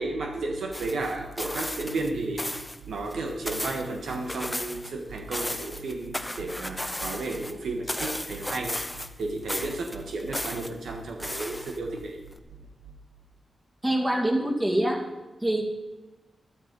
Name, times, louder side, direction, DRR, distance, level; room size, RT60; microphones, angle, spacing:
voice 1, 0.0-2.5 2.9-8.8 9.2-12.2, right 2 dB, 90° right, 2 dB, 1.5 m, -33 dB
sound 1, 0.7-2.1 2.4-2.8 3.1-4.9 5.2-7.5 7.9-9.2 9.5-10.7 11.2-12.0 12.4-12.5, left 1 dB, 10° left, 1.1 m, -34 dB
voice 2, 13.8-15.0 15.4-15.6, right 1 dB, 20° right, -1 dB, 2.7 m, -24 dB
12.0 x 11.5 x 5.4 m, 1.1 s
cardioid pair, 70°, 0 cm